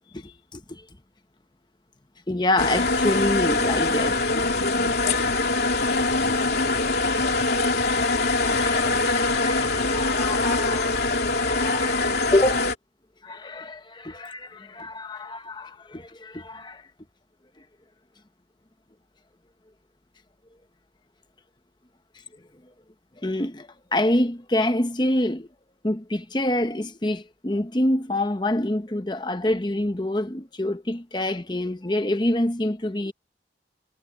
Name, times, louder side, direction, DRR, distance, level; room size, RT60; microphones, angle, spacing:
voice 1, 0.1-0.8 2.3-4.4 5.3-5.4 8.4-12.7 13.2-16.8 23.2-25.5 25.8-33.1, left 1 dB, 25° left, 1.0 m, -27 dB
sound 1, 2.6-12.7, left 3 dB, 65° left, 2.9 m, -23 dB
head